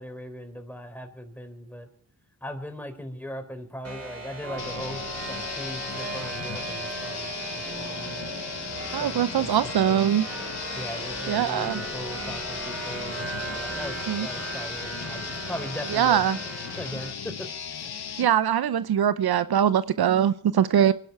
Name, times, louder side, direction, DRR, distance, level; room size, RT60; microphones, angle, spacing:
voice 1, 0.0-1.9 2.4-8.3 9.0-9.5 9.9-10.1 10.8-16.3 16.8-17.5, equal, 5° left, 4.0 m, -39 dB
sound 1, 3.9-17.1, right 2 dB, 40° right, 6.2 m, -36 dB
sound 2, 4.6-18.3, left 7 dB, 80° left, 1.5 m, -37 dB
voice 2, 8.9-10.2 11.3-11.8 14.1-14.3 15.9-16.4 18.2-20.9, right 9 dB, 75° right, 0.7 m, -22 dB
24.0 x 11.0 x 4.7 m
cardioid pair, 50°, 38 cm